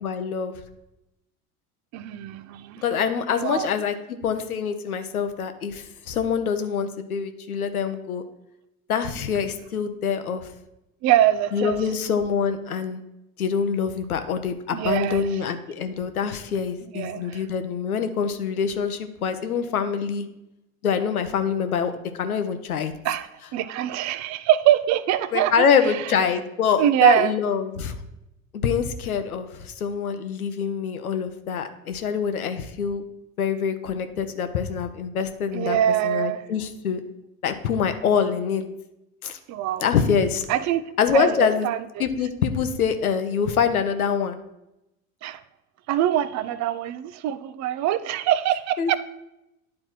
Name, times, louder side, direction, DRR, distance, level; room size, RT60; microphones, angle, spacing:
voice 1, 0.0-0.5 2.8-8.2 8.9-10.5 11.5-13.0 13.4-20.3 20.8-21.9 22.2-22.9 25.3-28.0 28.5-33.0 33.4-35.8 36.0-37.0 37.4-38.6 39.2-39.4 39.8-40.5 41.0-41.7 42.0-44.4 48.8-49.0, left 6 dB, 90° left, 9 dB, 0.8 m, -25 dB
voice 2, 1.9-2.8 3.4-3.7 11.0-11.8 14.7-15.3 16.9-17.4 23.0-25.7 26.8-27.3 35.5-36.4 39.5-39.8 40.5-40.8 41.1-42.0 45.2-45.4 45.9-49.0, right 12 dB, 40° right, 14 dB, 0.6 m, -23 dB
9.6 x 4.3 x 4.5 m, 0.89 s
hypercardioid pair, 80°, 42 cm